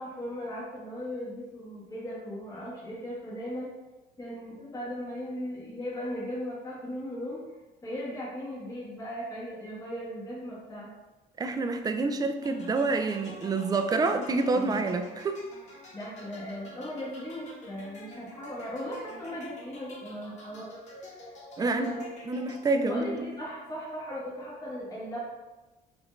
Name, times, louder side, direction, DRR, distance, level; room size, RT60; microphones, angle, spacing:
voice 1, 0.0-3.7 4.2-7.4 7.8-10.9 14.1-14.2 14.5-14.8 15.9-20.7 20.9-22.1 22.8-25.2, equal, 20° left, -7 dB, 1.5 m, -38 dB
voice 2, 11.4-15.4 21.6-21.9 22.3-23.0, right 3 dB, 20° right, 7 dB, 0.4 m, -27 dB
sound 1, 12.4-23.1, left 1 dB, 45° left, 1.3 m, -49 dB
5.0 x 2.5 x 3.1 m, 1.1 s
cardioid pair, 110°, 17 cm